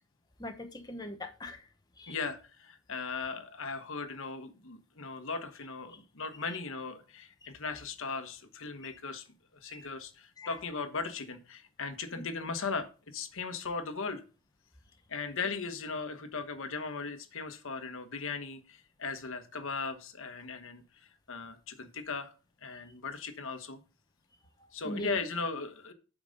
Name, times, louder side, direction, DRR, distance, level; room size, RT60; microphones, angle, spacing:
voice 1, 0.4-1.6 2.0-2.1 9.7-9.9 10.4-10.5 12.1-12.2 24.8-25.2, left 1 dB, 20° left, 0.9 m, -40 dB
voice 2, 2.1-9.2 9.6-14.2 15.1-20.8 21.3-22.3 22.6-23.8 24.7-25.9, left 4 dB, 65° left, 1.2 m, -38 dB
8.5 x 5.2 x 5.3 m
head